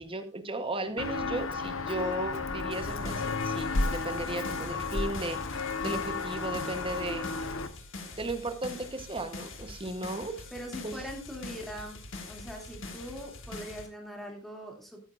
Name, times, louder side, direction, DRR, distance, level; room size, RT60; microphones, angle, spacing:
voice 1, 0.0-7.3 8.2-10.3 10.8-10.9, right 1 dB, 25° right, 8 dB, 1.1 m, -35 dB
Walk footsteps, 1.0-7.7, left 3 dB, 85° left, 1.1 m, -33 dB
sound 1, 2.7-13.9, left 3 dB, 70° left, 1.9 m, -44 dB
voice 2, 10.5-12.0 12.3-15.0, equal, ahead, 0 dB, 2.7 m, -41 dB
14.0 x 9.6 x 2.5 m, 0.39 s
head